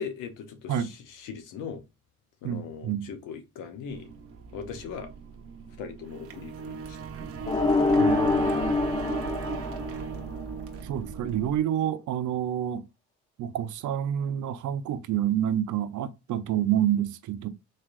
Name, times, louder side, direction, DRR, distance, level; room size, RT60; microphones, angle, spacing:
voice 1, 0.0-1.8 2.4-4.1 4.5-5.1 5.8-7.0, left 6 dB, 90° left, 0.9 m, -39 dB
voice 2, 2.4-3.1 8.0-8.6 10.8-12.9 13.4-17.5, right 10 dB, 75° right, 0.6 m, -28 dB
sound 1, 3.9-11.6, right 6 dB, 50° right, 0.9 m, -37 dB
sound 2, 7.5-10.4, left 3 dB, 15° left, 0.4 m, -25 dB
4.0 x 3.3 x 2.4 m
cardioid pair, 90°, 30 cm